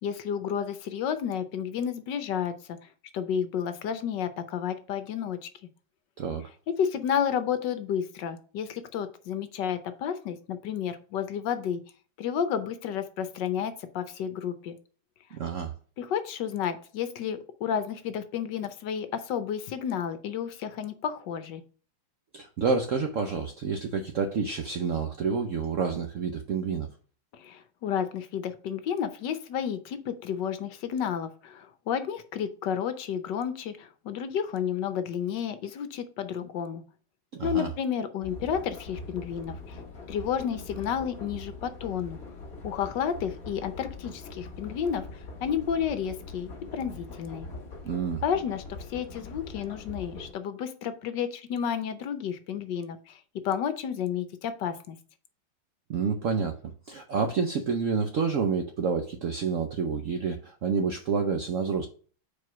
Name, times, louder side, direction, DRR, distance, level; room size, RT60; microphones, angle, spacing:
voice 1, 0.0-5.5 6.8-11.8 12.2-14.8 16.0-21.6 27.3-36.8 37.4-39.8 40.1-42.2 42.6-47.5 48.2-53.2 53.4-55.0, left 8 dB, 70° left, 10 dB, 1.3 m, -31 dB
voice 2, 6.2-6.5 15.3-15.7 22.3-26.9 37.3-37.7 47.8-48.2 55.9-61.9, right 5 dB, 70° right, 5 dB, 0.7 m, -29 dB
sound 1, 38.2-50.3, left 3 dB, 50° left, 1.8 m, -42 dB
4.7 x 4.6 x 6.0 m, 0.41 s
omnidirectional pair, 2.2 m